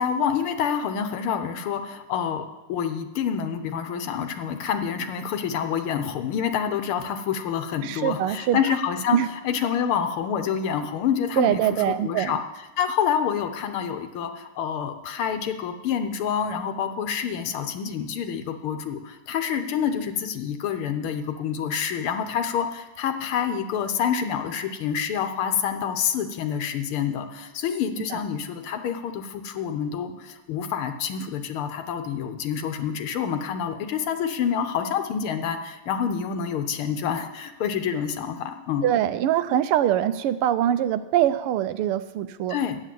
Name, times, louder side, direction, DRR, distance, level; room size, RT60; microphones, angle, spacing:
voice 1, 0.0-9.2 9.4-11.6 11.9-12.4 12.8-38.9 42.5-42.8, left 8 dB, 80° left, 7 dB, 1.7 m, -27 dB
voice 2, 7.8-8.6 9.1-9.3 11.4-12.4 38.8-42.5, right 11 dB, 90° right, 13 dB, 1.6 m, -23 dB
10.0 x 8.9 x 7.6 m, 1.1 s
omnidirectional pair, 2.4 m